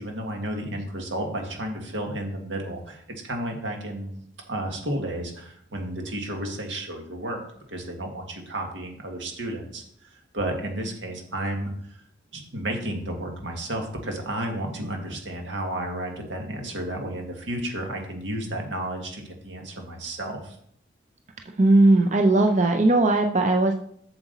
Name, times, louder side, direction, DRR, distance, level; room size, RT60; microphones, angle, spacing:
voice 1, 0.0-7.4 7.7-12.0 12.3-20.6, right 1 dB, 90° right, 2 dB, 1.8 m, -32 dB
voice 2, 21.6-23.7, right 2 dB, 40° right, 5 dB, 0.5 m, -18 dB
7.7 x 7.1 x 4.0 m, 0.67 s
head